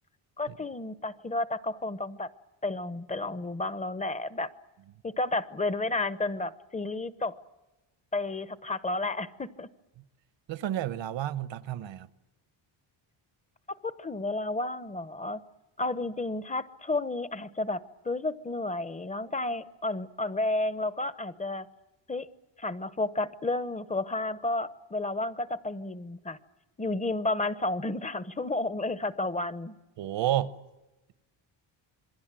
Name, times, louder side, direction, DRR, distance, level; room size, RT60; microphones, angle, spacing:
voice 1, 0.4-2.3 2.6-4.5 5.0-7.4 8.1-9.7 13.7-15.4 15.8-21.7 22.1-22.3 22.6-26.4 26.8-29.7, left 2 dB, 15° left, 0.9 m, -31 dB
voice 2, 10.5-12.1 30.0-30.5, right 12 dB, 70° right, 1.2 m, -30 dB
27.5 x 22.0 x 7.6 m
cardioid pair, 150°, 47 cm